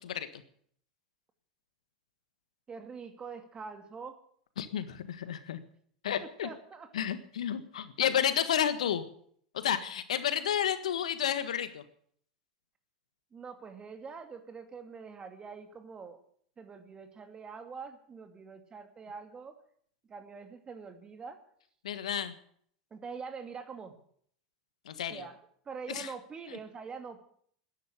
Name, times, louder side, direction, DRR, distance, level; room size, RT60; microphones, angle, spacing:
voice 1, 0.0-0.4 4.6-5.6 6.0-6.5 6.9-9.0 9.5-11.8 21.8-22.4 24.8-25.3 25.9-26.1, left 9 dB, 75° left, 11 dB, 1.5 m, -31 dB
voice 2, 2.7-4.2 6.2-6.9 13.3-16.2 16.6-19.6 20.1-21.4 22.9-24.0 25.1-27.2, right 5 dB, 25° right, 8 dB, 2.5 m, -44 dB
13.0 x 10.5 x 9.9 m, 0.62 s
hypercardioid pair, 90°, 4 cm